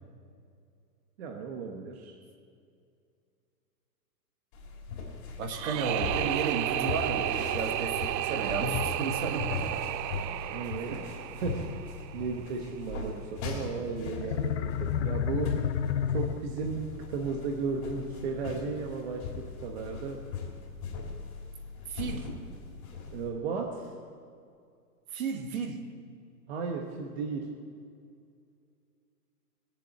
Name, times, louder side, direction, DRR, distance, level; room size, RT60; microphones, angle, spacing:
voice 1, 1.2-2.2 10.5-11.6 12.1-15.6 16.1-20.2 23.0-23.9 26.5-27.5, right 5 dB, 40° right, 2 dB, 1.2 m, -35 dB
sound 1, 4.5-23.3, left 4 dB, 30° left, 2.8 m, -40 dB
voice 2, 5.4-9.8 21.9-22.3 25.1-25.8, right 4 dB, 55° right, 6 dB, 1.7 m, -33 dB
sound 2, 5.5-12.5, right 14 dB, 90° right, 0.6 m, -33 dB
sound 3, 14.1-16.9, left 9 dB, 45° left, 0.5 m, -30 dB
19.5 x 7.4 x 8.1 m, 2.3 s
hypercardioid pair, 160°, 49 cm